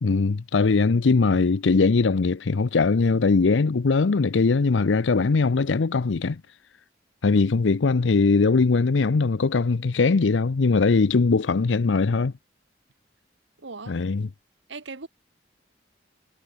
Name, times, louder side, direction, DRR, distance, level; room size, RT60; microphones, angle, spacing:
voice 1, 0.0-6.4 7.2-12.3 13.9-14.3, left 4 dB, 90° left, 0.6 m, -21 dB
voice 2, 13.6-14.0 14.7-15.1, right 4 dB, 85° right, 1.4 m, -38 dB
head